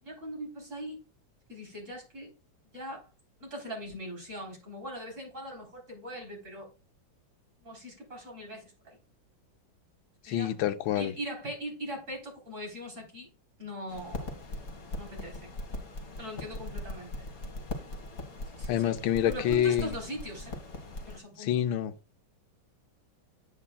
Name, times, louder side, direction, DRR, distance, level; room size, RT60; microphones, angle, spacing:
voice 1, 0.0-1.0 1.5-2.3 2.7-3.0 3.4-6.7 7.6-9.0 10.3-10.5 11.0-13.3 13.6-14.4 15.0-15.5 16.2-17.3 18.5-20.6 21.1-21.6, equal, 35° right, 4.1 m, -41 dB
voice 2, 10.3-11.1 18.7-19.9 21.4-21.9, left 10 dB, 85° left, 1.5 m, -27 dB
sound 1, 13.9-21.2, left 2 dB, 45° left, 2.2 m, -40 dB
9.7 x 8.5 x 2.3 m
omnidirectional pair, 2.1 m